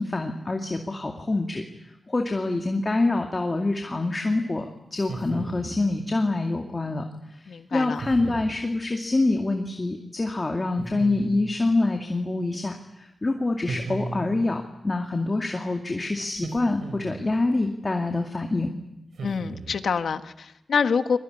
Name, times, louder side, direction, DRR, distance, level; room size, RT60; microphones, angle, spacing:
voice 1, 0.0-1.6 2.1-4.7 4.9-7.0 7.3-18.7, left 2 dB, 30° left, 3 dB, 2.3 m, -26 dB
sound 1, 5.0-5.8 8.0-8.6 10.8-11.6 13.7-14.5 16.3-17.3 19.2-19.9, right 3 dB, 90° right, 4.9 m, -36 dB
voice 2, 7.5-8.0 19.2-21.2, left 6 dB, 85° left, 9 dB, 1.4 m, -26 dB
23.5 x 22.5 x 9.9 m, 0.87 s
wide cardioid pair, 95°, 0 cm